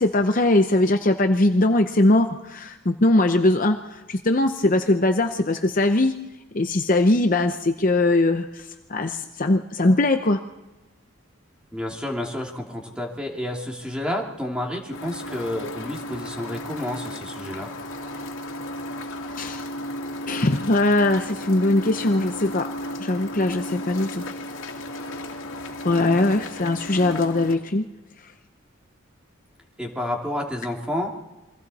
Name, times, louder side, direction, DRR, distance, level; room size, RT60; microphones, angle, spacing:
voice 1, 0.0-6.1 6.5-10.4 19.4-19.6 20.3-22.7 23.0-24.3 25.8-27.9, left 2 dB, 40° left, 6 dB, 0.7 m, -21 dB
voice 2, 11.7-17.7 29.8-31.1, left 1 dB, 5° right, 0 dB, 2.6 m, -30 dB
sound 1, 14.9-27.6, left 1 dB, 65° left, 2.5 m, -34 dB
28.0 x 24.0 x 4.2 m, 1.1 s
head